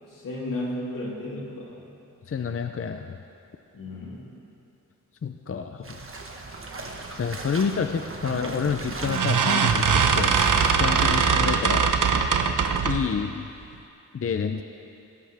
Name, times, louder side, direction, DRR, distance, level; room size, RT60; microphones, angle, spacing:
voice 1, 0.0-1.9 3.7-4.2, left 1 dB, 80° left, -4 dB, 3.3 m, -34 dB
voice 2, 2.3-3.2 5.2-6.0 7.1-10.3 10.6-11.9 12.8-13.5 14.1-14.6, left 6 dB, 45° left, 6 dB, 0.6 m, -29 dB
sound 1, 5.8-11.3, right 3 dB, 40° right, 1.4 m, -37 dB
sound 2, 8.3-8.5 9.0-13.1, right 6 dB, 75° right, 0.9 m, -21 dB
20.0 x 17.0 x 3.5 m, 2.7 s
wide cardioid pair, 140°, 32 cm